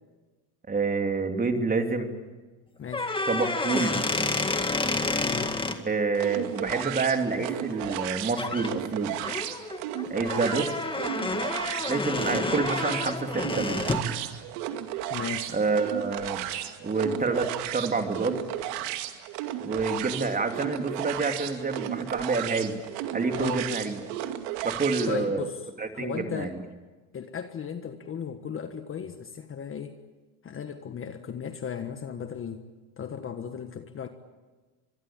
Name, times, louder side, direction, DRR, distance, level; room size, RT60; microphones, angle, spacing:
voice 1, 0.7-2.1 3.3-4.0 5.8-9.1 10.1-10.7 11.9-13.9 15.5-16.4 16.8-18.4 19.6-22.8 23.1-24.0 24.6-25.4 25.8-26.5, right 4 dB, 15° right, 5 dB, 2.9 m, -28 dB
voice 2, 2.8-3.2 5.2-5.5 15.1-15.6 23.3-23.7 25.1-25.6 25.9-26.5 27.1-30.0 30.4-32.7 33.0-34.1, left 7 dB, 25° left, 8 dB, 1.4 m, -36 dB
sound 1, 2.9-5.8 7.9-8.1 8.4-8.7 9.2-14.1, left 3 dB, 10° left, 2.0 m, -29 dB
sound 2, 6.1-25.1, right 12 dB, 65° right, 2.5 m, -34 dB
25.0 x 22.0 x 8.8 m, 1.3 s
supercardioid pair, 120°, 49 cm